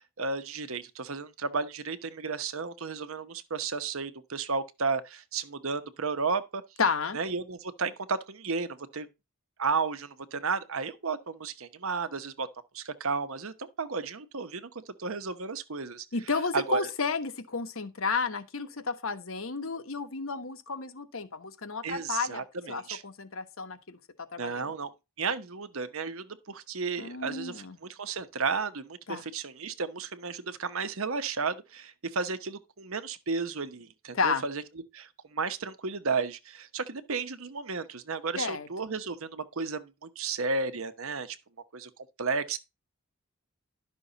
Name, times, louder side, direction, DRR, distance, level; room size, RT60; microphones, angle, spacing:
voice 1, 0.0-6.6 7.1-9.1 9.6-12.5 12.7-16.1 16.5-16.8 21.8-23.0 24.4-24.9 25.2-34.6 34.9-41.4 41.7-41.9 42.2-42.6, right 4 dB, 70° right, 1.0 m, -33 dB
voice 2, 6.8-7.2 16.1-22.4 22.7-24.7 27.0-27.8 29.1-29.2 34.1-34.4 38.4-38.7, left 4 dB, 65° left, 1.2 m, -32 dB
11.5 x 6.2 x 4.0 m
head